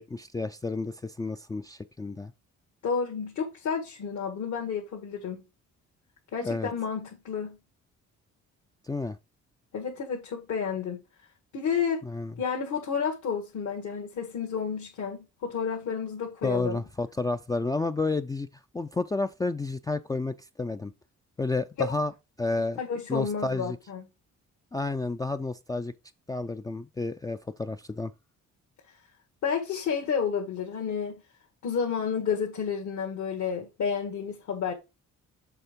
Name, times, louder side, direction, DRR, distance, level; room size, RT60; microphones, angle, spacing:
voice 1, 0.0-2.3 6.4-6.7 8.9-9.2 12.0-12.3 16.4-18.5 18.7-20.9 21.4-22.1 22.4-22.8 23.1-23.8 24.7-25.9 26.3-28.1, left 3 dB, 10° left, 0.3 m, -31 dB
voice 2, 2.8-5.4 6.3-7.6 9.7-11.0 11.5-12.0 12.4-16.8 21.9-22.0 22.6-24.0 29.4-31.2 31.6-34.7, left 6 dB, 70° left, 1.7 m, -31 dB
7.0 x 3.6 x 5.1 m
cardioid pair, 90°, 30 cm